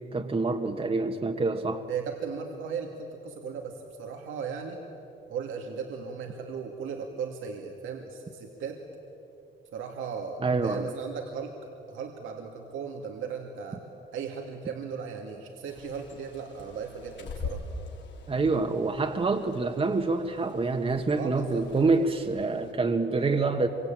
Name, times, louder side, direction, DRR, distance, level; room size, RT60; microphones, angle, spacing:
voice 1, 0.0-1.9 10.4-10.8 18.3-23.7, right 3 dB, 30° right, 4 dB, 1.6 m, -26 dB
voice 2, 1.9-4.8 5.3-8.8 9.7-11.5 11.9-13.8 14.1-17.6 21.1-21.9, right 6 dB, 85° right, 2 dB, 2.5 m, -37 dB
Bird, 15.6-22.7, left 3 dB, 65° left, 4.0 m, -43 dB
26.5 x 24.5 x 9.1 m, 2.9 s
cardioid pair, 90°, 20 cm